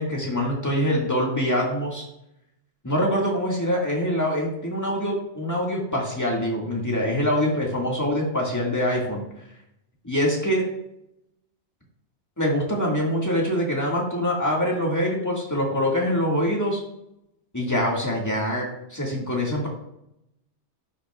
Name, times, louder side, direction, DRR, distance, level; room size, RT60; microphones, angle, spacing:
voice 1, 0.0-2.1 2.8-9.2 10.0-10.6 12.4-16.8 17.5-19.7, equal, 15° left, -2 dB, 1.8 m, -24 dB
11.5 x 6.3 x 2.4 m, 0.80 s
omnidirectional pair, 1.2 m